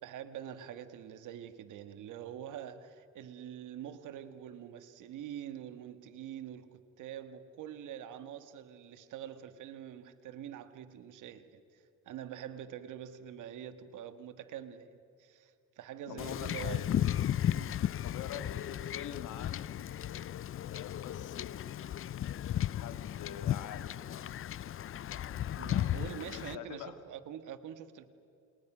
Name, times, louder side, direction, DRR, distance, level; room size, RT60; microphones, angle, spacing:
voice 1, 0.0-16.8 17.5-17.8 25.6-28.1, right 10 dB, 85° right, 10 dB, 1.8 m, -45 dB
voice 2, 16.1-16.9 18.0-19.8 20.7-21.5 22.7-24.0 25.0-27.0, left 9 dB, 80° left, 9 dB, 2.1 m, -46 dB
Wind / Ocean / Boat Water vehicle, 16.2-26.5, left 11 dB, 45° left, 0.5 m, -35 dB
29.0 x 28.5 x 6.3 m, 2.7 s
cardioid pair, 90°, 30 cm